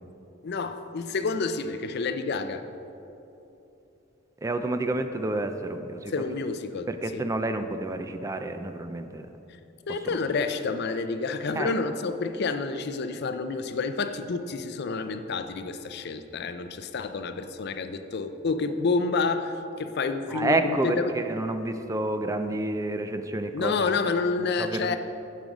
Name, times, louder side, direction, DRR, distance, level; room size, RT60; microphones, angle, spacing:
voice 1, 0.4-2.6 6.1-7.2 9.9-21.1 23.5-25.0, left 4 dB, 55° left, 9 dB, 0.5 m, -29 dB
voice 2, 4.4-6.1 6.9-9.3 11.6-11.7 20.3-23.7 24.6-25.0, right 2 dB, 15° right, 8 dB, 0.4 m, -29 dB
8.9 x 7.6 x 4.9 m, 3.0 s
head